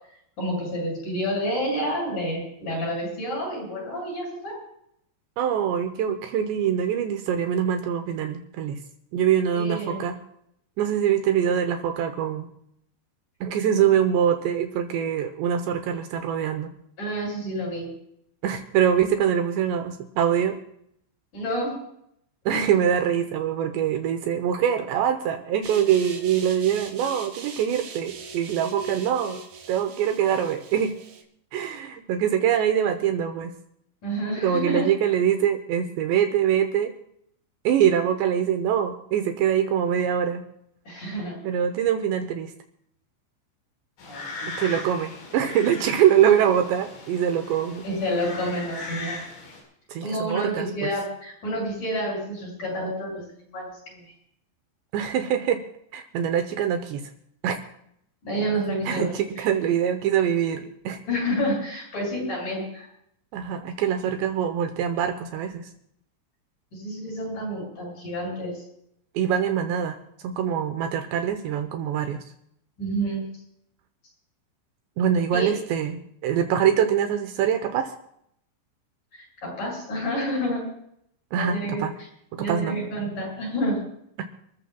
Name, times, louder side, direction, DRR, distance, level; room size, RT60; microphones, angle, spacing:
voice 1, 0.4-4.5 9.5-10.0 17.0-17.9 21.3-21.7 34.0-34.9 40.9-41.4 44.0-44.5 47.8-49.2 50.0-53.2 53.5-54.1 58.2-59.1 61.1-62.9 66.7-68.6 72.8-73.3 75.3-75.5 79.1-80.6 81.3-81.8 82.4-83.8, equal, 40° left, -2 dB, 9.0 m, -29 dB
voice 2, 5.4-8.8 9.1-10.2 10.8-12.5 13.4-16.7 18.4-20.6 22.5-29.4 29.7-31.0 31.5-33.5 34.4-36.9 37.6-40.4 41.4-42.5 44.5-47.8 49.9-50.9 54.9-55.6 55.9-57.1 57.4-57.6 58.9-61.0 63.3-65.7 69.2-70.0 70.2-72.2 75.0-77.9 81.3-81.9 82.3-82.8 84.2-84.3, right 9 dB, 75° right, 7 dB, 3.0 m, -24 dB
sound 1, 25.6-31.2, right 5 dB, 60° right, 2.8 m, -39 dB
sound 2, 44.0-49.6, left 3 dB, 75° left, 7.1 m, -39 dB
29.5 x 14.5 x 2.3 m, 0.73 s
omnidirectional pair, 5.4 m